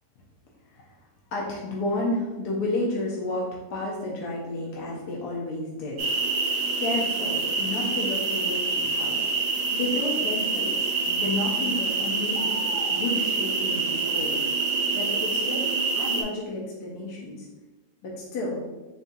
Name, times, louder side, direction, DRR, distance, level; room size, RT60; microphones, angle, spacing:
voice 1, 1.3-9.3 9.7-12.5 12.9-14.4 14.9-17.5 18.0-18.6, left 2 dB, 75° left, -3 dB, 1.3 m, -31 dB
sound 1, 6.0-16.2, right 4 dB, 75° right, 1.2 m, -26 dB
3.9 x 3.9 x 2.6 m, 1.1 s
omnidirectional pair, 1.8 m